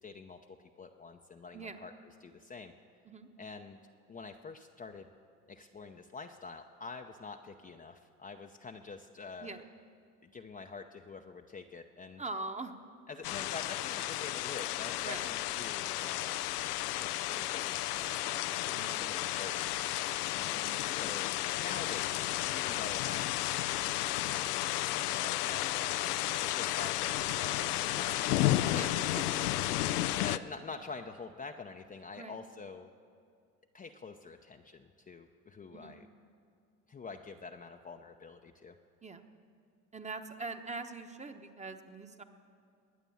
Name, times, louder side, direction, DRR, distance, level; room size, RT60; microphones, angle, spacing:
voice 1, 0.0-0.4 0.8-2.7 3.4-3.8 4.1-5.1 5.5-9.6 10.2-12.2 13.1-16.5 17.0-19.6 20.3-20.6 20.9-22.2 22.5-23.4 24.1-24.6 24.9-26.1 26.4-29.3 30.2-32.9 33.7-36.1 36.9-38.7, left 4 dB, 20° left, 4 dB, 0.7 m, -46 dB
voice 2, 1.5-1.8 3.1-3.3 9.4-9.6 12.2-12.7 15.0-15.2 18.7-19.0 20.4-20.8 28.7-29.5 32.2-32.3 35.7-36.0 39.0-39.2 39.9-42.2, right 3 dB, 15° right, 7 dB, 1.1 m, -42 dB
sound 1, 13.2-30.4, left 15 dB, 85° left, 0.6 m, -33 dB
20.5 x 9.0 x 7.2 m, 2.3 s
hypercardioid pair, 85°, 45 cm